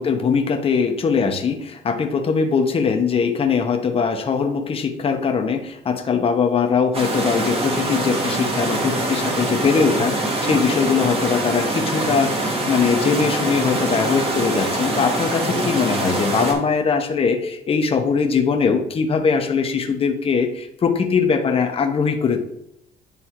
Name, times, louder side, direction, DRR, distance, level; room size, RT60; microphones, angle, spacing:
voice 1, 0.0-22.4, left 5 dB, 35° left, 4 dB, 0.8 m, -21 dB
sound 1, 6.9-16.5, right 2 dB, 35° right, 1.5 m, -24 dB
9.7 x 3.4 x 2.9 m, 0.76 s
cardioid pair, 110°, 17 cm